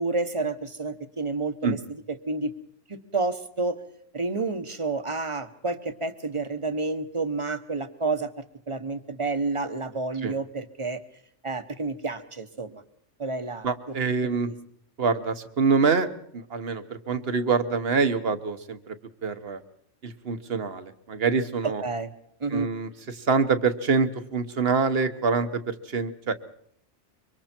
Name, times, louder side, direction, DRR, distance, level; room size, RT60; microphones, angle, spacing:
voice 1, 0.0-1.8 2.1-2.5 2.9-3.8 4.1-11.0 11.4-12.8 13.2-13.7 14.4-14.5 21.8-22.1 22.4-22.7, right 3 dB, 25° right, 10 dB, 1.2 m, -30 dB
voice 2, 13.6-14.5 15.0-16.1 16.3-18.9 19.2-19.6 20.0-21.8 22.5-26.3, right 5 dB, 55° right, 11 dB, 1.4 m, -25 dB
25.5 x 24.0 x 4.5 m, 0.70 s
omnidirectional pair, 1.2 m